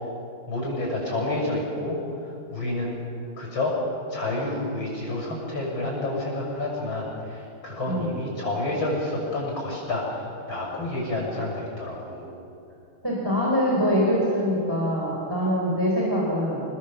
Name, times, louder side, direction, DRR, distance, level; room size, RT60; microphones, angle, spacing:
voice 1, 0.5-2.0 2.5-3.0 3.4-3.7 4.1-12.3, left 2 dB, 75° left, -2 dB, 7.7 m, -29 dB
voice 2, 13.0-16.6, equal, 10° right, -4 dB, 4.2 m, -24 dB
29.0 x 20.0 x 7.4 m, 2.7 s
omnidirectional pair, 2.2 m